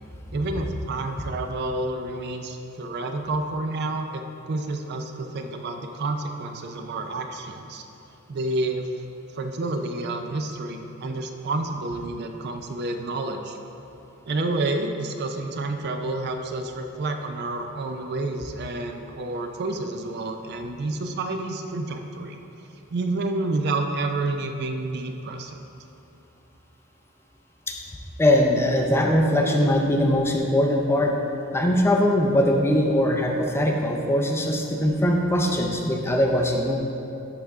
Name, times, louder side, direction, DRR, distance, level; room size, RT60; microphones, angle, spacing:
voice 1, 0.3-7.8 8.3-8.9 9.3-13.6 14.2-22.4 22.9-25.6, right 2 dB, 50° right, 5 dB, 0.4 m, -29 dB
voice 2, 28.2-31.1 31.5-36.8, left 1 dB, 10° left, 1 dB, 0.4 m, -21 dB
11.0 x 3.7 x 3.5 m, 3.0 s
head